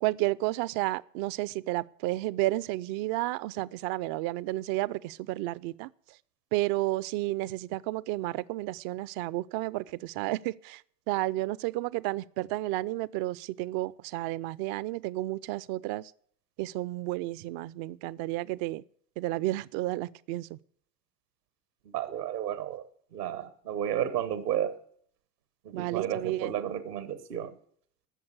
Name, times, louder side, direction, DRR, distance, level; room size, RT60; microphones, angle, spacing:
voice 1, 0.0-5.9 6.5-10.8 11.1-16.0 16.6-18.8 19.2-20.5 25.7-26.5, right 17 dB, 50° right, 0.6 m, -31 dB
voice 2, 21.8-22.9 23.1-24.8 25.6-27.6, right 10 dB, 75° right, 1.3 m, -32 dB
13.0 x 7.0 x 8.0 m
figure-of-eight pair, 60°, 47 cm